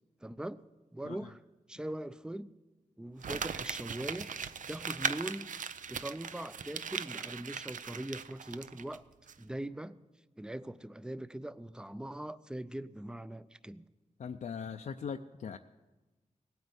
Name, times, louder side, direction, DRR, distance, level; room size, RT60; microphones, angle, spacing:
voice 1, 0.2-0.6 0.9-1.4 1.7-2.5 3.0-4.3 4.7-5.5 5.9-9.0 9.4-10.0 10.4-13.8, right 1 dB, 5° right, 16 dB, 0.4 m, -41 dB
Crumpling crinkling, 3.2-9.0 9.3-9.4, right 7 dB, 85° right, 0.5 m, -39 dB
voice 2, 14.2-15.6, left 6 dB, 75° left, 5 dB, 0.5 m, -40 dB
17.5 x 9.3 x 8.0 m, 1.1 s
wide cardioid pair, 135°, 13 cm